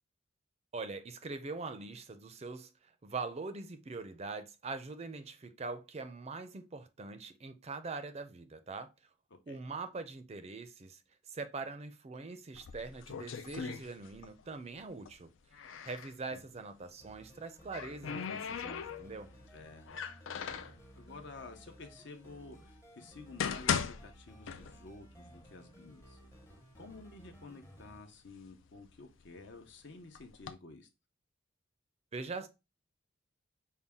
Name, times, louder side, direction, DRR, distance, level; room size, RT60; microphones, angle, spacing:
voice 1, 0.7-8.9 9.5-11.0 11.3-15.3 15.7-19.3 32.1-32.5, right 3 dB, 35° right, 0.4 m, -43 dB
sound 1, 12.5-14.4 14.7-16.2 17.3-19.3 19.9-20.8 21.6-21.7 22.3-22.4 23.1-25.1 25.4-25.5 26.2-26.3 26.7-27.3 27.8-29.5 30.2-30.5, left 7 dB, 80° left, 0.4 m, -38 dB
sound 2, 17.0-28.0, right 1 dB, 15° left, 0.7 m, -57 dB
voice 2, 19.5-19.9 21.0-26.2 26.8-30.9, left 3 dB, 65° left, 0.8 m, -51 dB
5.4 x 2.3 x 3.5 m
head